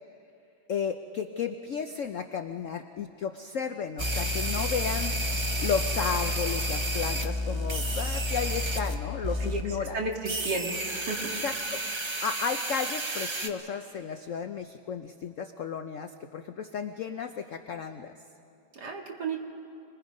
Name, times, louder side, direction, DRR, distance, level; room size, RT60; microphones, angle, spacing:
voice 1, 0.7-5.1 5.6-10.0 11.2-18.1, left 6 dB, 80° left, 7 dB, 0.6 m, -33 dB
sound 1, 4.0-9.0 9.2-9.6 10.3-13.5, equal, 35° right, 0.4 m, -30 dB
voice 2, 9.9-11.3 18.7-19.4, right 3 dB, 55° right, 0 dB, 2.5 m, -33 dB
26.5 x 21.0 x 5.3 m, 2.5 s
omnidirectional pair, 2.2 m